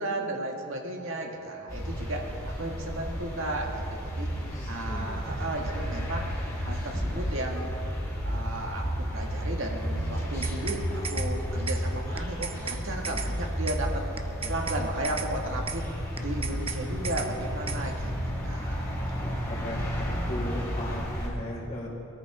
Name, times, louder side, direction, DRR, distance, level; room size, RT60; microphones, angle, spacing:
voice 1, 0.0-4.3 4.7-6.3 6.6-7.8 8.3-8.9 9.1-14.0 14.5-15.9 16.2-18.1 18.4-18.9, right 1 dB, 70° right, 1 dB, 1.9 m, -34 dB
sound 1, 1.7-21.3, equal, 20° left, 3.6 m, -32 dB
voice 2, 4.5-5.2 14.4-14.5 19.2-21.9, left 1 dB, 35° left, -4 dB, 3.9 m, -37 dB
sound 2, 10.2-10.8 11.0-11.3 11.7-11.8 12.2-12.8 13.0-13.3 13.7-13.8 14.2-14.8 15.0-15.3 15.7-15.8 16.2-16.8 17.0-17.3 17.7-17.8, right 6 dB, 30° right, 0.7 m, -35 dB
22.5 x 13.5 x 3.7 m, 2.9 s
head